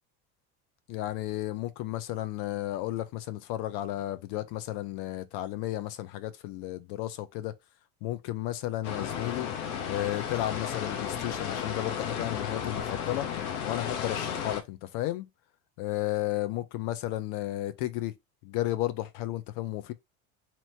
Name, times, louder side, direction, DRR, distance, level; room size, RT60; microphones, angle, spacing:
voice 1, 0.9-7.5 8.0-9.5 9.9-13.3 13.7-15.3 15.8-18.1 18.4-19.9, left 15 dB, 65° left, 0.8 m, -33 dB
sound 1, 8.8-14.6, left 8 dB, 85° left, 1.0 m, -33 dB
2.9 x 2.9 x 4.4 m
hypercardioid pair, 85°, 43 cm